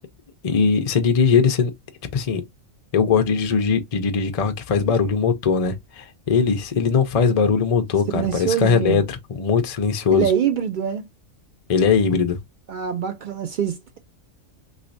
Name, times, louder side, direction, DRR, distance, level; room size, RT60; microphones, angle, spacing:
voice 1, 0.4-1.7 2.1-2.4 2.9-10.3 11.7-12.4, left 5 dB, 55° left, 0.4 m, -20 dB
voice 2, 8.1-9.0 10.1-11.0 12.7-14.0, right 8 dB, 80° right, 0.4 m, -24 dB
3.1 x 3.1 x 2.6 m
omnidirectional pair, 1.4 m